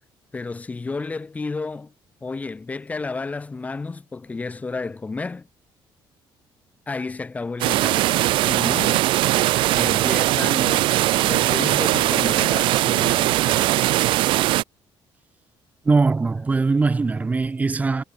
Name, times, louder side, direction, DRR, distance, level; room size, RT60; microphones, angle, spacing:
voice 1, 0.3-1.9 2.2-5.5 6.9-8.1 8.4-9.1 9.7-13.9, left 3 dB, 15° left, 4.2 m, -31 dB
sound 1, 7.6-14.6, right 16 dB, 70° right, 0.3 m, -20 dB
voice 2, 15.9-18.0, right 4 dB, 15° right, 2.5 m, -21 dB
cardioid pair, 165°, 9 cm